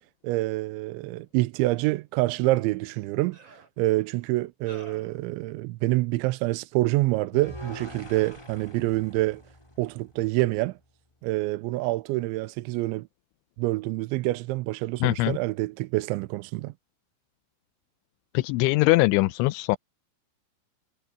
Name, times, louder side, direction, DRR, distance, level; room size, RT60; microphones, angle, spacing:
voice 1, 0.2-9.4 9.8-10.8 11.2-13.1 13.6-16.7, right 19 dB, 85° right, 3.0 m, -27 dB
sound 1, 2.4-2.5 3.3-3.7 4.7-5.2, right 1 dB, 25° right, 5.9 m, -48 dB
sound 2, 7.3-10.5, equal, 5° left, 4.2 m, -44 dB
voice 2, 15.0-15.4 18.3-19.8, left 20 dB, 85° left, 3.1 m, -22 dB
omnidirectional pair, 5.4 m